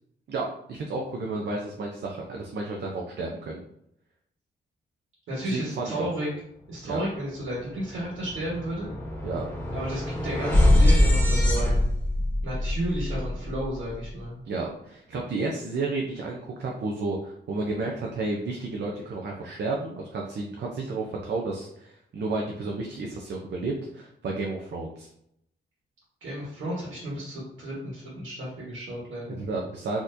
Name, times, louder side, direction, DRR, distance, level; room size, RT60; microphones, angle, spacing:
voice 1, 0.3-3.6 5.4-6.1 6.8-7.0 9.2-9.4 14.5-25.1 29.4-30.0, right 3 dB, 65° right, 0 dB, 0.6 m, -32 dB
voice 2, 5.3-6.3 6.7-8.9 9.7-11.9 12.4-14.4 26.2-29.4, right 1 dB, 90° right, -6 dB, 1.4 m, -33 dB
sound 1, 7.4-7.5 7.8-14.0, left 1 dB, 10° left, 1.4 m, -24 dB
4.3 x 2.9 x 2.6 m, 0.75 s
wide cardioid pair, 115°, 19 cm